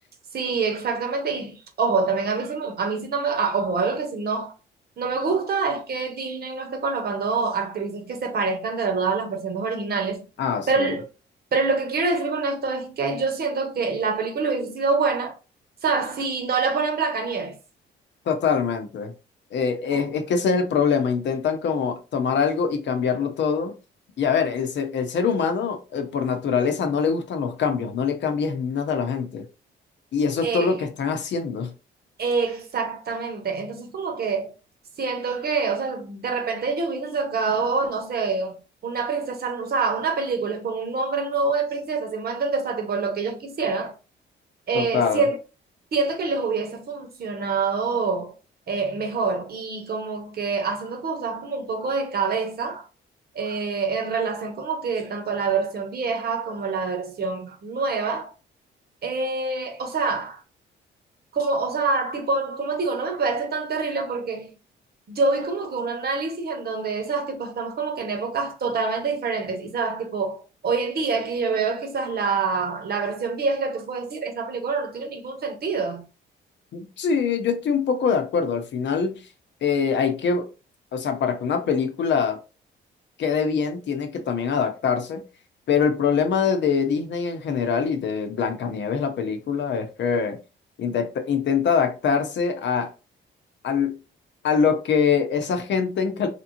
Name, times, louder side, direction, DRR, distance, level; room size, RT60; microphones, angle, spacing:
voice 1, 0.3-4.5 5.0-10.3 10.7-11.0 11.5-15.3 15.8-17.6 19.9-20.0 30.4-30.8 32.2-34.5 35.0-38.5 38.8-43.9 44.7-45.4 45.9-48.3 48.7-52.9 53.3-58.3 59.0-60.4 61.3-64.5 65.1-76.0, right 4 dB, 50° right, 1.0 m, -26 dB
voice 2, 10.4-10.9 18.3-19.1 19.5-23.8 24.2-29.5 30.1-31.7 44.7-45.2 76.7-79.2 79.6-80.5 80.9-82.4 83.2-85.2 85.7-90.4 90.8-92.9 93.6-94.0 94.4-96.3, left 6 dB, 65° left, 0.8 m, -24 dB
3.3 x 2.9 x 2.6 m
cardioid pair, 90°, 20 cm